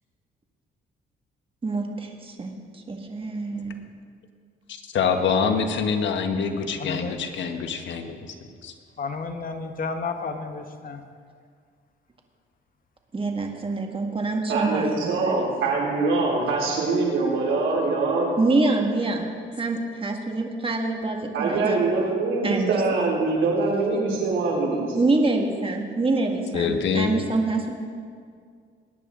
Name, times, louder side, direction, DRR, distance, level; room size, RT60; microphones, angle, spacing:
voice 1, 1.6-3.8 13.1-15.4 18.4-21.9 22.4-22.8 23.0-23.1 24.9-27.7, right 3 dB, 25° right, 2 dB, 1.9 m, -26 dB
voice 2, 4.9-8.2 8.6-8.7 26.5-27.1, left 6 dB, 70° left, 6 dB, 1.3 m, -25 dB
voice 3, 6.8-7.2 9.0-11.0, left 4 dB, 45° left, 6 dB, 1.3 m, -31 dB
voice 4, 14.5-18.4 21.3-24.8, right 3 dB, 80° right, -4 dB, 4.4 m, -23 dB
21.0 x 10.0 x 3.8 m, 2.1 s
cardioid pair, 90°, 20 cm